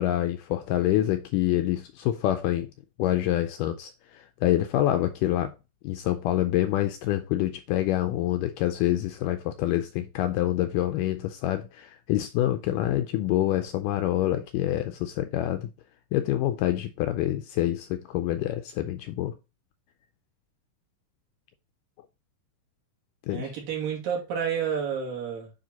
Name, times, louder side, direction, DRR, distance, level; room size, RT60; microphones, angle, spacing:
voice 1, 0.0-2.7 3.0-5.5 5.8-15.7 16.1-19.3 23.3-23.5, left 13 dB, 80° left, 1.9 m, -26 dB
voice 2, 23.3-25.5, right 7 dB, 70° right, 4.0 m, -30 dB
9.0 x 3.7 x 3.9 m
omnidirectional pair, 4.1 m